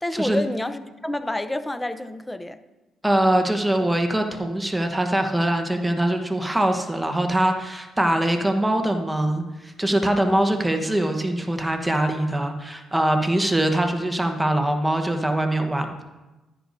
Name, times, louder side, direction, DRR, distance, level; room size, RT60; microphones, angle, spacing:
voice 1, 0.0-2.6, left 1 dB, 10° left, 11 dB, 0.6 m, -28 dB
voice 2, 3.0-16.0, right 1 dB, 10° right, 4 dB, 1.1 m, -23 dB
11.0 x 10.0 x 2.7 m, 1.1 s
cardioid pair, 90°, 0 cm